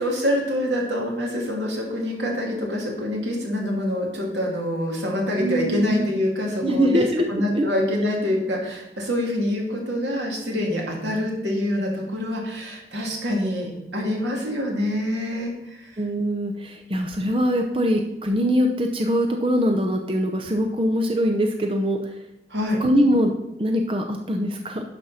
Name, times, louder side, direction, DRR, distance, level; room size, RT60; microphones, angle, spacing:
voice 1, 0.0-16.0 22.5-22.8, left 1 dB, 90° right, -1 dB, 2.5 m, -26 dB
voice 2, 5.4-6.1 6.6-7.7 16.0-22.1 22.8-23.3 23.6-24.8, equal, 30° right, 4 dB, 0.6 m, -23 dB
11.0 x 4.3 x 5.6 m, 0.91 s
head